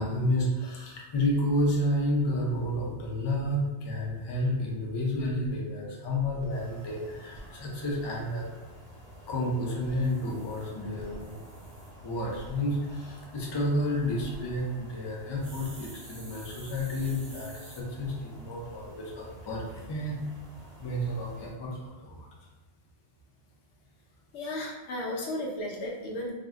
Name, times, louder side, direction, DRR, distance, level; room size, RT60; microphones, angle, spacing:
voice 1, 0.0-8.4 9.3-11.3 12.0-20.2 20.8-22.3, left 1 dB, 35° left, -3 dB, 0.4 m, -30 dB
sound 1, 5.7-5.8 6.0-6.1 6.4-7.4 9.7-11.9 12.3-12.5 14.0-14.4 15.4-17.8, right 1 dB, 30° right, 0.5 m, -49 dB
sound 2, 6.5-21.5, equal, 5° left, 1.0 m, -50 dB
voice 2, 24.3-26.3, left 1 dB, 90° left, -1 dB, 1.0 m, -34 dB
2.5 x 2.1 x 3.5 m, 1.2 s
omnidirectional pair, 1.2 m